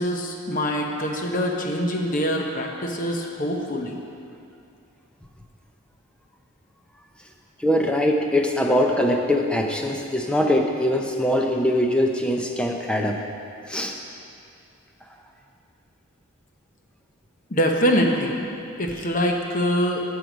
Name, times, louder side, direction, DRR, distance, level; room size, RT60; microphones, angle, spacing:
voice 1, 0.0-3.9 17.5-18.3 18.8-20.0, equal, 35° left, 1 dB, 0.9 m, -24 dB
voice 2, 7.6-13.3 13.7-14.0 15.0-15.2, left 1 dB, 5° left, 2 dB, 0.5 m, -22 dB
14.0 x 4.9 x 5.1 m, 2.6 s
head